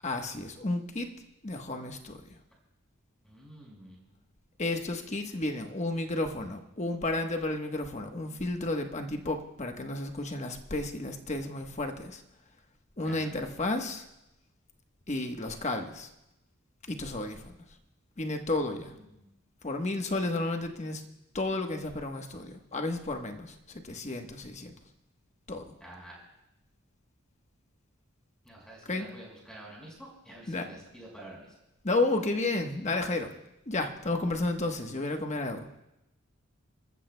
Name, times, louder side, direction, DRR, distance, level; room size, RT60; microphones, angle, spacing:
voice 1, 0.0-1.1 1.4-2.2 4.6-12.2 13.0-14.0 15.1-16.1 16.9-17.6 18.2-18.9 19.6-21.0 21.3-24.7 25.5-25.6 28.9-29.1 30.5-30.7 31.8-33.3 33.7-35.8, left 2 dB, 35° left, 4 dB, 1.1 m, -32 dB
voice 2, 3.2-4.1 13.0-13.3 18.6-19.3 25.8-26.2 28.4-31.5, right 1 dB, 5° left, -2 dB, 4.9 m, -48 dB
28.5 x 14.0 x 2.2 m, 0.88 s
head